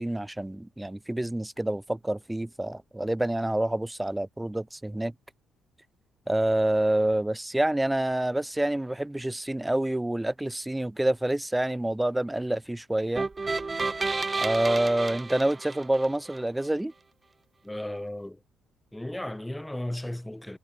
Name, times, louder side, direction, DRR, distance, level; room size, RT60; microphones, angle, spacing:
voice 1, 0.0-5.1 6.3-13.3 14.4-16.9, right 1 dB, 10° right, 1.3 m, -27 dB
sound 1, 13.2-16.4, right 3 dB, 25° right, 2.1 m, -31 dB
voice 2, 17.6-18.4 18.9-20.6, left 1 dB, 5° left, 3.8 m, -35 dB
cardioid pair, 90°, 0 cm